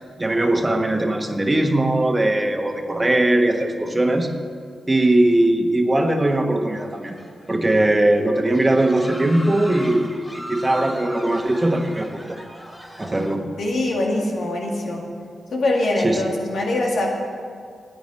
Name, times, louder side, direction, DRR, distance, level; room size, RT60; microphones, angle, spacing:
voice 1, 0.2-4.3 4.9-7.2 7.5-12.4 13.0-13.4 16.0-16.2, right 1 dB, 25° right, 4 dB, 1.4 m, -20 dB
sound 1, 6.8-7.6 7.9-8.1 8.5-13.4, equal, 10° left, 2.6 m, -38 dB
voice 2, 13.6-15.0 15.5-17.1, left 2 dB, 75° left, -1 dB, 2.1 m, -23 dB
10.5 x 9.0 x 7.8 m, 2.2 s
supercardioid pair, 40°, 0 cm